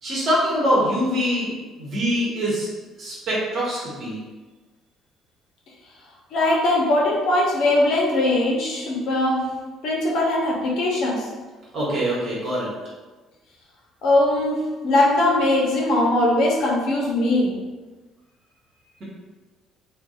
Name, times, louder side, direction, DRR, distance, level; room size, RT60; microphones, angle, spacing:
voice 1, 0.0-2.7 3.0-4.2 11.7-12.7, equal, 55° right, -6 dB, 1.1 m, -24 dB
voice 2, 6.3-9.5 9.8-11.3 14.0-17.5, left 1 dB, 65° left, -3 dB, 0.6 m, -20 dB
2.5 x 2.2 x 2.3 m, 1.3 s
hypercardioid pair, 55°, 0 cm